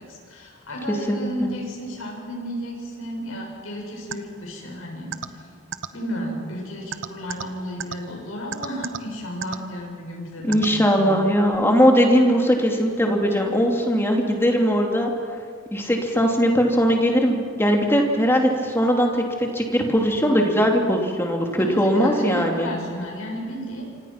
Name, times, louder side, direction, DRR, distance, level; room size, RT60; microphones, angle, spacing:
voice 1, 0.0-5.4 5.9-11.1 21.6-23.8, equal, 90° left, 0 dB, 7.3 m, -33 dB
voice 2, 0.9-1.5 10.4-15.1 15.7-22.7, equal, 10° left, 1 dB, 2.8 m, -20 dB
sound 1, 4.1-4.2 5.1-5.3 5.7-5.9 6.9-7.4 7.8-7.9 8.5-9.0 9.4-9.6 10.5-10.7, right 7 dB, 65° right, 0.9 m, -29 dB
27.5 x 25.5 x 5.9 m, 2.2 s
head